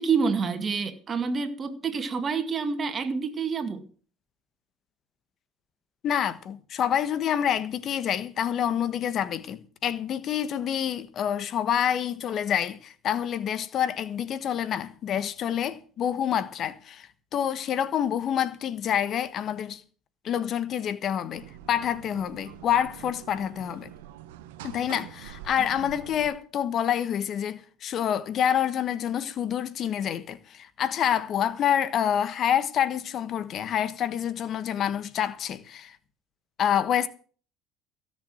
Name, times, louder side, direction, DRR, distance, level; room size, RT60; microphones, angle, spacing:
voice 1, 0.0-3.9, right 5 dB, 35° right, 2.1 m, -28 dB
voice 2, 6.0-19.8 20.2-23.9 24.6-36.0 36.6-37.1, left 9 dB, 50° left, 1.3 m, -27 dB
sound 1, 21.3-26.3, right 12 dB, 90° right, 1.2 m, -45 dB
16.5 x 7.0 x 7.7 m
supercardioid pair, 90°, 0 cm